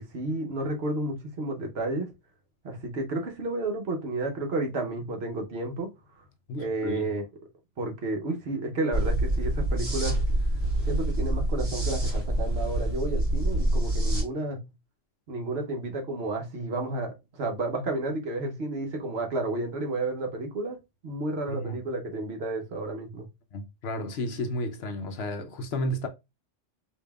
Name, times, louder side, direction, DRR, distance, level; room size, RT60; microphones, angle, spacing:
voice 1, 0.0-2.1 2.6-5.9 6.6-7.2 7.8-10.2 10.9-14.6 15.3-20.8 21.0-23.3, right 2 dB, 60° right, 1.0 m, -31 dB
voice 2, 6.5-7.1 21.5-21.8 23.5-26.1, left 1 dB, 65° left, 0.8 m, -32 dB
sound 1, 8.9-14.2, right 1 dB, 35° right, 2.4 m, -26 dB
5.0 x 2.7 x 2.2 m
omnidirectional pair, 1.3 m